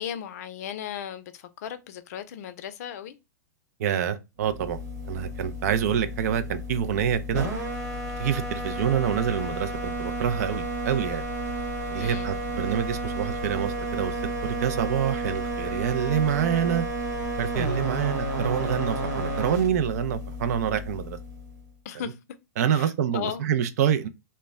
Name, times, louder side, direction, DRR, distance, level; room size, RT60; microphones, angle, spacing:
voice 1, 0.0-3.1 12.0-12.3 21.8-22.2 22.7-23.4, left 9 dB, 65° left, 0.4 m, -36 dB
voice 2, 3.8-4.8 5.1-7.5 8.2-11.2 11.9-14.2 14.4-16.8 17.4-21.2 22.6-24.1, right 9 dB, 65° right, 0.4 m, -26 dB
sound 1, 4.4-21.7, right 1 dB, 85° right, 1.1 m, -32 dB
2.1 x 2.1 x 3.4 m
hypercardioid pair, 130°, 9 cm